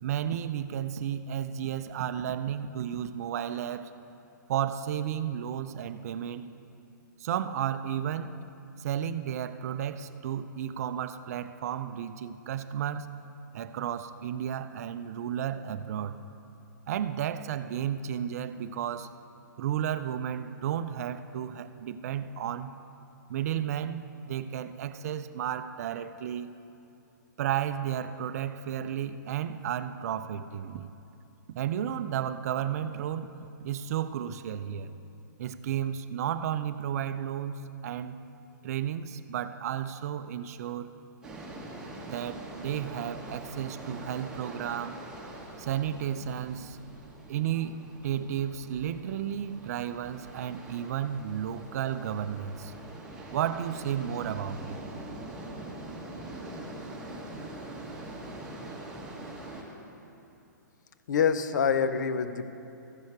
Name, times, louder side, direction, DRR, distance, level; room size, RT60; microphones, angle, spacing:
voice 1, 0.0-3.9 4.5-6.5 7.2-8.4 8.8-13.1 13.5-16.2 16.9-19.1 19.6-22.7 23.3-26.5 27.4-30.9 31.5-33.3 33.6-34.9 35.4-38.2 38.6-40.9 42.1-45.0 45.6-46.8 47.3-52.7 53.3-54.8, right 9 dB, 50° right, 12 dB, 0.4 m, -33 dB
sound 1, 41.2-59.6, right 1 dB, 5° right, 1.6 m, -43 dB
voice 2, 61.1-62.5, left 6 dB, 65° left, 10 dB, 0.6 m, -26 dB
14.5 x 6.3 x 4.8 m, 2.8 s
hypercardioid pair, 125°, 10 cm